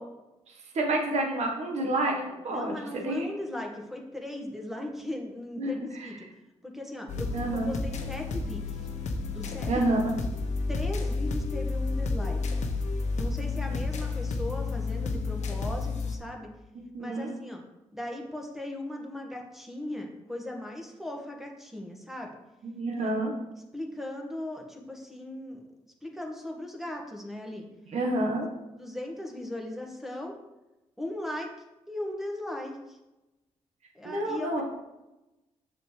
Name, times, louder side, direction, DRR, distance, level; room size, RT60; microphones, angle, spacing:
voice 1, 0.7-2.8 3.0-3.3 5.6-6.1 7.3-7.7 9.7-10.0 16.9-17.3 22.7-23.3 27.9-28.5 34.0-34.6, right 2 dB, 60° right, 1 dB, 1.3 m, -28 dB
voice 2, 2.5-6.3 6.6-8.6 9.3-9.8 10.7-12.6 13.2-16.5 17.0-17.6 17.9-22.3 23.0-23.1 23.5-25.6 26.0-27.7 28.8-30.4 31.0-31.5 31.9-33.0 33.9-34.6, left 1 dB, 5° right, 1 dB, 1.6 m, -38 dB
sound 1, 7.1-16.2, left 3 dB, 65° left, 0.9 m, -31 dB
7.1 x 5.8 x 3.2 m, 0.99 s
supercardioid pair, 55°, 13 cm